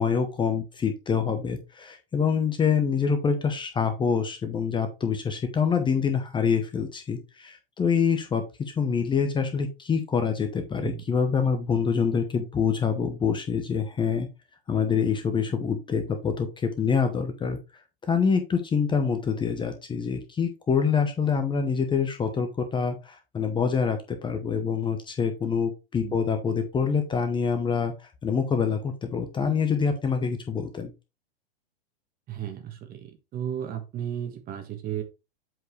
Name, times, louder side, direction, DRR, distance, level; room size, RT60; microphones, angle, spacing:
voice 1, 0.0-14.3 14.7-17.6 18.0-30.9, left 6 dB, 15° left, 7 dB, 0.9 m, -26 dB
voice 2, 32.3-35.0, right 10 dB, 30° right, 8 dB, 1.5 m, -34 dB
7.8 x 4.6 x 3.3 m, 0.27 s
hypercardioid pair, 115°, 31 cm